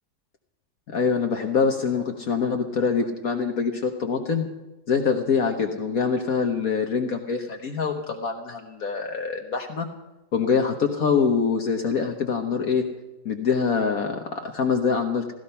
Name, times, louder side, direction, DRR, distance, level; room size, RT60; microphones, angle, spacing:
voice 1, 0.9-4.4 4.9-9.9 10.3-12.9 13.2-15.3, left 5 dB, 55° left, 4 dB, 1.5 m, -24 dB
16.5 x 14.5 x 5.7 m, 1.0 s
omnidirectional pair, 1.9 m